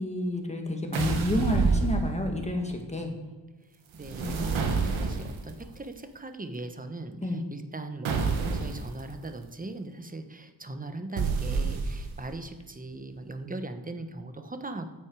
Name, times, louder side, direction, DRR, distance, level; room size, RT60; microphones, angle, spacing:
voice 1, 0.0-3.1 4.2-4.6 7.2-7.4, left 1 dB, 15° left, 3 dB, 2.0 m, -30 dB
sound 1, 0.9-2.5 4.0-5.5 8.0-8.9 11.2-12.3, right 4 dB, 90° right, 1.4 m, -28 dB
voice 2, 3.9-14.9, right 2 dB, 20° right, 7 dB, 1.1 m, -39 dB
13.0 x 9.0 x 4.8 m, 1.2 s
cardioid pair, 85°, 46 cm